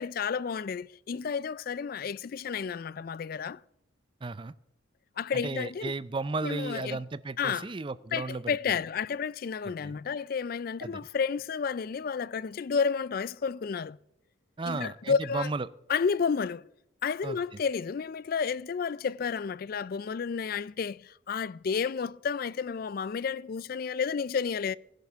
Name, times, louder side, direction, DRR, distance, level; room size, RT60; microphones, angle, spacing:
voice 1, 0.0-3.6 5.2-5.9 6.4-7.0 7.4-7.7 8.1-14.0 14.7-15.5 15.9-16.6 17.0-24.8, left 6 dB, 45° left, 0.3 m, -31 dB
voice 2, 4.2-4.5 5.3-8.5 9.6-10.0 10.8-11.1 14.6-15.7 17.2-17.4, right 3 dB, 25° right, 0.4 m, -34 dB
16.5 x 10.5 x 3.5 m
head